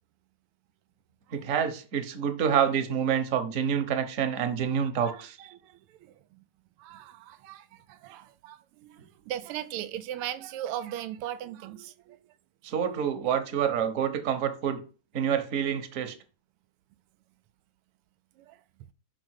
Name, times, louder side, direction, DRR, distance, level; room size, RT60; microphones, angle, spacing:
voice 1, 1.3-5.4 12.6-14.8 15.1-16.1, right 8 dB, 50° right, 1.1 m, -27 dB
voice 2, 5.1-6.4 6.8-12.2 18.4-18.6, right 11 dB, 90° right, 1.5 m, -39 dB
5.1 x 5.0 x 6.4 m
omnidirectional pair, 2.4 m